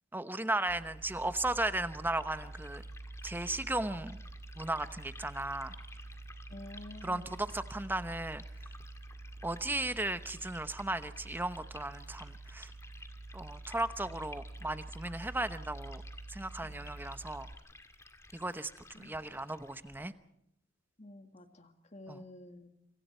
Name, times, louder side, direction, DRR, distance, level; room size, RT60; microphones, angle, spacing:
voice 1, 0.1-2.8 3.2-4.2 4.6-5.7 7.0-8.4 9.4-12.7 13.3-16.0 16.3-17.5 18.3-18.7 19.0-20.1 22.1-22.2, right 2 dB, 10° right, 11 dB, 1.0 m, -36 dB
sound 1, 0.7-17.5, right 2 dB, 45° right, 1.0 m, -48 dB
Liquid, 1.0-20.1, left 2 dB, 15° left, 1.8 m, -55 dB
voice 2, 6.5-7.4 16.6-16.9 18.9-19.2 21.0-22.7, left 1 dB, 35° left, 7 dB, 2.0 m, -50 dB
27.5 x 26.0 x 4.5 m, 0.77 s
head